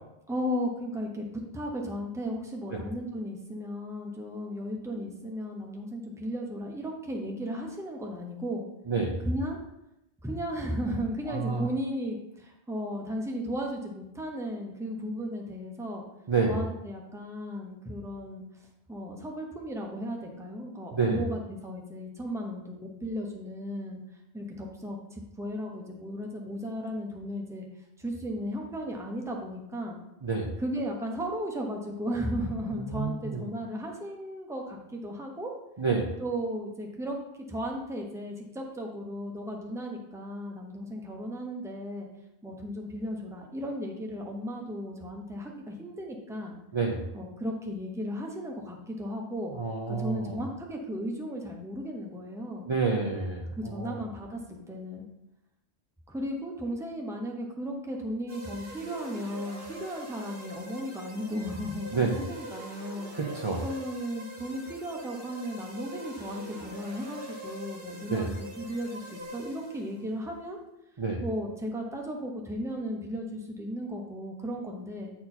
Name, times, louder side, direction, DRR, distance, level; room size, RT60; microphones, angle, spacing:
voice 1, 0.3-8.7 9.2-9.6 10.2-16.0 16.5-18.4 18.9-24.0 24.3-27.7 28.0-30.0 30.6-35.5 36.2-42.1 42.4-46.5 47.1-49.5 49.9-52.7 53.5-54.4 54.7-55.0 56.1-63.1 63.6-70.6 71.2-75.1, equal, 5° right, 0 dB, 0.9 m, -35 dB
voice 2, 11.3-11.7 16.3-16.6 20.9-21.2 30.2-30.5 32.7-33.4 35.8-36.1 46.7-47.0 49.5-50.4 52.6-54.0 61.9-62.2 63.1-63.6 68.1-68.3 71.0-71.2, right 4 dB, 30° right, -3 dB, 0.8 m, -29 dB
sound 1, 58.3-70.0, equal, 75° right, 1.8 m, -43 dB
8.4 x 4.3 x 4.4 m, 0.87 s
omnidirectional pair, 1.2 m